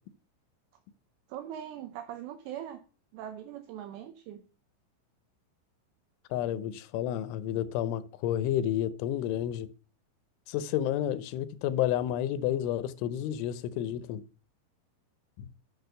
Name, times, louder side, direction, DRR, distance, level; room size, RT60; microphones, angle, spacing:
voice 1, 1.3-2.8 3.1-4.4, right 10 dB, 80° right, 2.9 m, -41 dB
voice 2, 6.3-9.7 10.5-14.2, left 11 dB, 85° left, 3.1 m, -30 dB
8.7 x 6.3 x 6.6 m
omnidirectional pair, 5.4 m